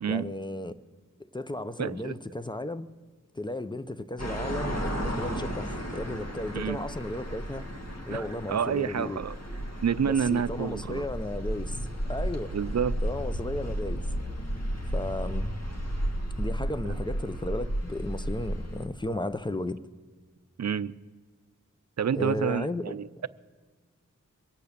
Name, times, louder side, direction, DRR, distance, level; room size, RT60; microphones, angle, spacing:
voice 1, 0.1-0.8 1.2-2.9 3.3-7.7 8.1-9.2 10.0-11.8 12.1-12.5 13.0-14.1 14.9-15.5 16.4-19.8 22.1-22.9, left 1 dB, 15° left, 0.7 m, -34 dB
voice 2, 1.8-2.1 6.5-6.8 8.1-9.3 9.8-11.0 12.5-12.9 16.8-17.0 20.6-21.0 22.0-23.3, right 7 dB, 55° right, 0.5 m, -29 dB
sound 1, 4.2-18.9, equal, 50° left, 1.8 m, -33 dB
22.5 x 8.4 x 6.7 m
wide cardioid pair, 45°, 33 cm